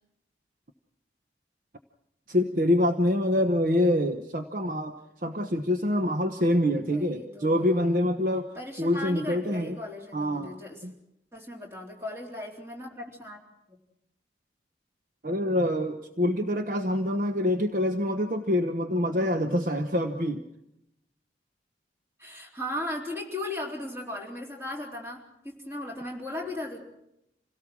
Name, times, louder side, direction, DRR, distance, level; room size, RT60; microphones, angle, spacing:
voice 1, 2.3-4.9 5.2-8.5 8.8-9.8 10.1-10.9 15.2-20.4, left 1 dB, 50° right, 6 dB, 1.1 m, -26 dB
voice 2, 6.7-8.1 8.6-10.8 11.3-13.4 13.7-13.8 22.2-26.8, left 1 dB, 15° right, -1 dB, 3.7 m, -37 dB
27.0 x 17.5 x 6.2 m, 0.83 s
head